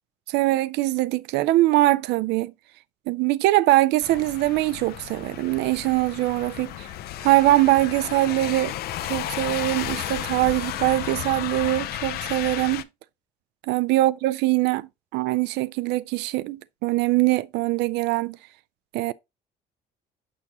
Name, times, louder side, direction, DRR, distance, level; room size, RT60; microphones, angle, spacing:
voice 1, 0.3-2.5 3.1-6.9 7.2-8.7 9.0-12.8 13.7-18.4 18.9-19.1, right 17 dB, 85° right, 0.4 m, -22 dB
sound 1, 4.0-12.8, left 13 dB, 65° left, 0.5 m, -33 dB
6.2 x 6.1 x 2.8 m
cardioid pair, 110°, 17 cm